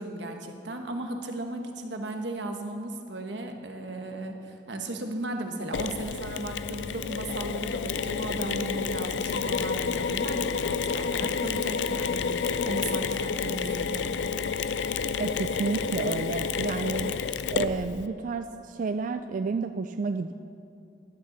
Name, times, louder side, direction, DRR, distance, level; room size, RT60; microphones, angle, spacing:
voice 1, 0.0-14.1, right 2 dB, 80° right, 4 dB, 1.1 m, -36 dB
Mechanisms, 5.7-18.1, left 6 dB, 85° left, 0.4 m, -30 dB
voice 2, 15.2-17.1 17.5-20.3, right 4 dB, 45° right, 8 dB, 0.3 m, -30 dB
12.0 x 6.6 x 7.0 m, 2.5 s
head